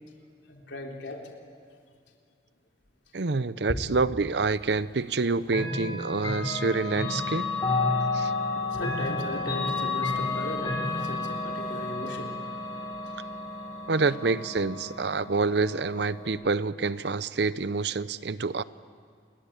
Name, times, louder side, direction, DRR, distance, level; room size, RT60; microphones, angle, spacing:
voice 1, 0.5-1.3 3.7-3.8 8.5-13.9 17.2-17.3, left 1 dB, 75° left, 1 dB, 3.8 m, -38 dB
voice 2, 3.1-7.5 8.1-8.3 13.9-18.6, right 4 dB, 65° right, 16 dB, 0.7 m, -27 dB
Chime / Clock, 5.5-16.3, left 3 dB, 25° left, 5.1 m, -31 dB
28.5 x 22.0 x 8.9 m, 2.2 s
head